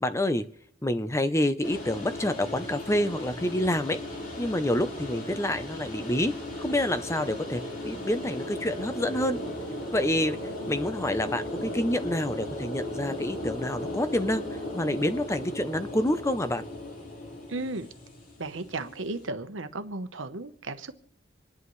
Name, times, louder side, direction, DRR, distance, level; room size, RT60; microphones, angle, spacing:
voice 1, 0.0-0.4 0.8-4.0 4.4-6.3 6.6-9.4 9.9-10.4 10.7-14.5 14.7-16.6, left 1 dB, 15° left, 0.6 m, -27 dB
sound 1, 1.6-19.3, left 1 dB, 45° left, 4.4 m, -36 dB
voice 2, 17.5-17.9 18.4-20.9, right 2 dB, 85° right, 1.0 m, -35 dB
26.5 x 11.0 x 3.2 m
head